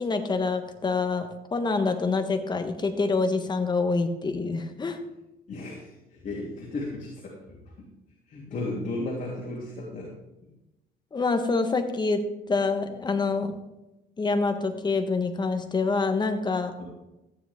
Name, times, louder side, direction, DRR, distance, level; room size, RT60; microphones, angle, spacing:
voice 1, 0.0-5.0 11.1-12.2 12.5-13.6 14.2-16.7, left 3 dB, 25° left, 7 dB, 1.4 m, -26 dB
voice 2, 5.5-7.4 8.3-10.1 10.4-10.5 16.8-16.9, left 2 dB, 45° left, -3 dB, 3.0 m, -34 dB
14.0 x 10.0 x 3.7 m, 0.97 s
cardioid pair, 110°, 17 cm